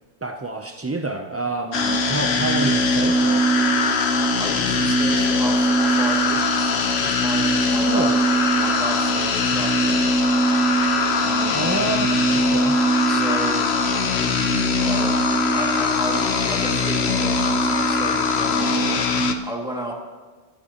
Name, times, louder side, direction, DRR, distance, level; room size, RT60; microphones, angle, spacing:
voice 1, 0.2-3.5 7.8-8.2 11.5-12.8, right 3 dB, 25° right, 4 dB, 0.3 m, -28 dB
sound 1, 1.7-19.3, left 2 dB, 70° left, 1.1 m, -20 dB
voice 2, 4.0-6.7 7.0-8.1 8.5-10.1 11.1-11.7 13.1-13.7 14.7-15.1 15.5-18.7 19.4-19.9, right 1 dB, 5° right, -1 dB, 2.0 m, -33 dB
23.0 x 13.5 x 2.9 m, 1.4 s
omnidirectional pair, 1.1 m